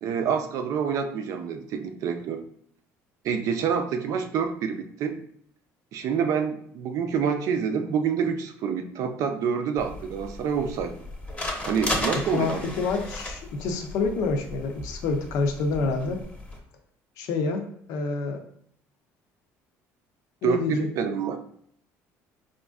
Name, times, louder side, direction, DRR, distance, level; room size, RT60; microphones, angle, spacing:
voice 1, 0.0-2.4 3.2-5.2 5.9-10.9 11.6-12.7 20.4-21.4, right 6 dB, 65° right, 7 dB, 0.5 m, -27 dB
sound 1, 9.8-16.6, left 1 dB, 20° left, 0.7 m, -35 dB
voice 2, 12.1-16.2 17.2-18.4 20.4-21.1, left 4 dB, 80° left, 5 dB, 0.6 m, -28 dB
4.2 x 2.5 x 2.3 m, 0.66 s
cardioid pair, 110°, 6 cm